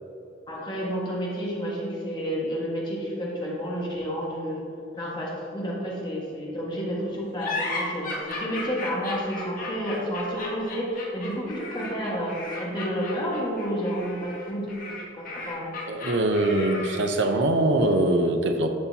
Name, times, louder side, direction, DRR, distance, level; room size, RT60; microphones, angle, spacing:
voice 1, 0.5-4.7 4.9-15.7, equal, 25° left, -5 dB, 1.6 m, -30 dB
sound 1, 7.4-17.2, left 2 dB, 50° left, 1.7 m, -35 dB
voice 2, 15.9-18.7, right 1 dB, 70° right, 5 dB, 0.6 m, -23 dB
11.5 x 5.5 x 2.8 m, 2.8 s
head